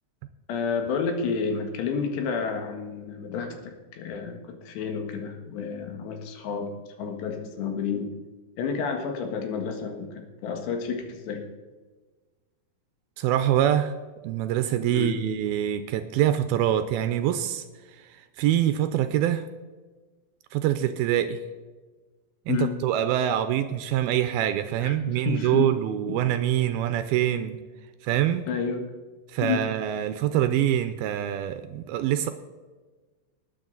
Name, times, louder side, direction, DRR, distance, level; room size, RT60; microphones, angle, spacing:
voice 1, 0.5-6.7 7.0-8.1 8.6-11.4 14.9-15.2 22.5-22.8 24.8-25.7 26.1-26.2 28.5-28.9 29.4-29.7, left 6 dB, 90° left, 4 dB, 3.8 m, -30 dB
voice 2, 13.2-13.9 14.2-17.6 17.9-19.5 20.5-21.4 22.5-27.6 28.0-28.5 29.3-32.3, right 11 dB, 80° right, 10 dB, 2.3 m, -25 dB
19.5 x 9.4 x 4.0 m, 1.3 s
omnidirectional pair, 4.8 m